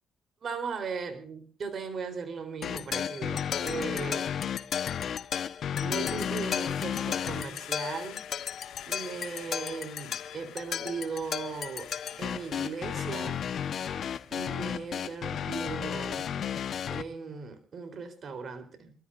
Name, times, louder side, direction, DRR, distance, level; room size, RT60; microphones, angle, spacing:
voice 1, 0.4-4.3 5.8-8.2 8.9-11.9 12.2-13.5 14.3-16.3 16.9-18.9, right 5 dB, 50° right, 7 dB, 3.8 m, -38 dB
sound 1, 2.6-17.0, left 8 dB, 60° left, 1.1 m, -33 dB
sound 2, 5.4-17.0, left 11 dB, 85° left, 2.8 m, -49 dB
27.5 x 13.5 x 2.6 m, 0.39 s
cardioid pair, 90°, 0 cm